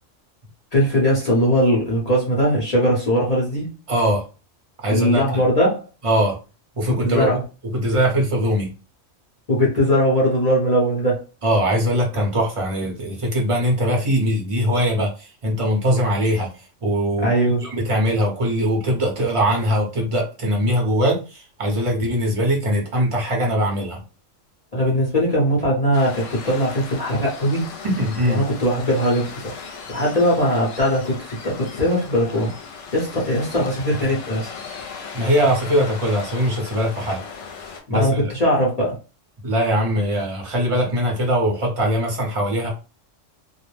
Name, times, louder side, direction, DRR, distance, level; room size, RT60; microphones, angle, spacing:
voice 1, 0.7-3.7 4.9-5.8 7.0-7.4 9.5-11.2 17.2-17.7 24.7-27.7 28.3-29.5 29.9-32.5 32.9-34.5 37.9-38.9, equal, 35° left, -5 dB, 0.8 m, -20 dB
voice 2, 3.9-4.2 4.8-5.4 6.0-6.4 6.7-7.3 7.8-8.7 11.4-16.5 16.8-24.0 28.0-28.4 35.1-37.2 37.9-38.2 39.4-42.7, equal, 30° right, 0 dB, 0.7 m, -21 dB
Waves surf, 25.9-37.8, left 6 dB, 75° left, 0.9 m, -37 dB
2.4 x 2.0 x 3.1 m, 0.33 s
omnidirectional pair, 1.3 m